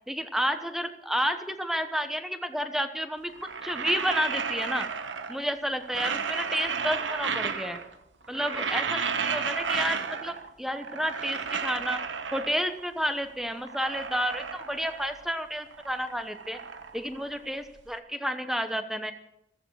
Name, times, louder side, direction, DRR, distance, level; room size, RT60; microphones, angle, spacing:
voice 1, 0.1-3.3 3.6-4.9 5.3-7.8 8.3-12.0 12.3-16.6 16.9-19.1, equal, ahead, 9 dB, 1.1 m, -30 dB
sound 1, 3.3-5.5 5.8-8.0 8.2-10.5 10.8-12.8 13.3-15.3 15.6-17.8, right 6 dB, 85° right, 1.3 m, -33 dB
15.5 x 14.5 x 6.4 m, 0.81 s
head